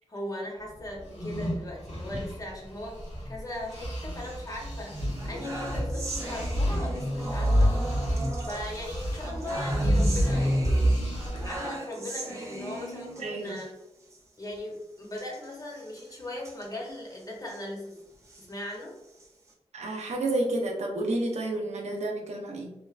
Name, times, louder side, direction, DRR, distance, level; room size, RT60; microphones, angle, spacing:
voice 1, 0.1-7.7 8.5-11.1 11.4-13.7 14.4-18.0 18.4-19.0, left 1 dB, 30° left, -2 dB, 0.7 m, -39 dB
sound 1, 1.0-3.4 3.7-11.6, equal, 90° left, 1.3 m, -28 dB
sound 2, 3.6-4.5 4.9-13.7 14.0-14.2 14.4-14.6 15.1-17.6 18.1-19.5, right 2 dB, 25° right, 0.6 m, -40 dB
voice 2, 13.2-13.6 19.7-22.7, right 2 dB, 75° right, 1 dB, 0.6 m, -30 dB
3.1 x 2.1 x 2.3 m, 0.93 s
wide cardioid pair, 95°, 12 cm